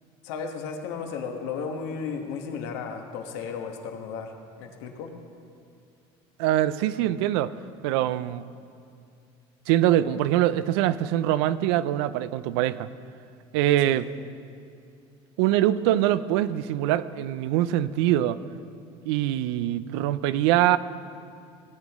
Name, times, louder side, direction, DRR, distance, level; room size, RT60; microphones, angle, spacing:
voice 1, 0.2-4.3 4.6-5.1 7.0-7.1 13.8-14.0, left 5 dB, 85° left, 4 dB, 1.3 m, -34 dB
voice 2, 6.4-7.5 7.8-8.4 9.7-12.9 13.5-14.1 15.4-18.4 19.1-20.8, right 13 dB, 85° right, 16 dB, 0.4 m, -23 dB
18.0 x 8.8 x 3.6 m, 2.4 s
supercardioid pair, 105°, 13 cm